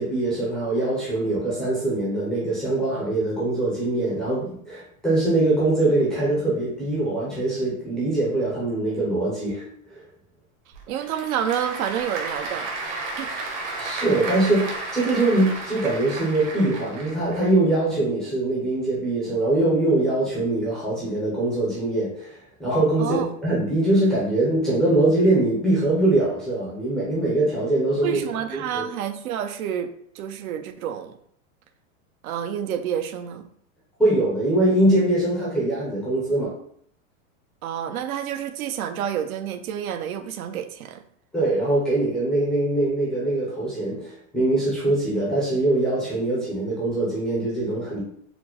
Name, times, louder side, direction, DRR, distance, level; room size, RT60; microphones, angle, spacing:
voice 1, 0.0-10.1 13.8-28.2 28.5-28.8 34.0-36.5 41.3-48.0, right 2 dB, ahead, 0.3 m, -23 dB
Applause / Crowd, 10.7-17.5, right 3 dB, 55° right, 1.0 m, -33 dB
voice 2, 10.9-12.7 13.2-13.3 23.0-23.3 28.0-29.9 30.1-31.1 32.2-33.5 37.6-41.0, right 9 dB, 90° right, 0.5 m, -29 dB
4.2 x 2.0 x 2.8 m
supercardioid pair, 145°, 42 cm